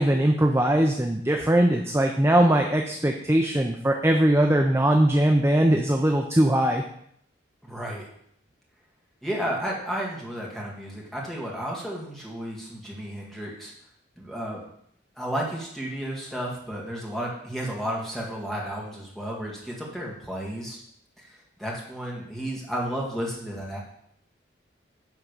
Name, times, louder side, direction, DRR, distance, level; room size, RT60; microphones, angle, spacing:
voice 1, 0.0-6.8, right 1 dB, 15° right, 2 dB, 0.5 m, -21 dB
voice 2, 7.6-8.0 9.2-13.7 14.2-14.6 15.2-20.8 21.2-23.8, equal, ahead, -4 dB, 1.9 m, -32 dB
10.5 x 3.7 x 6.7 m, 0.70 s
head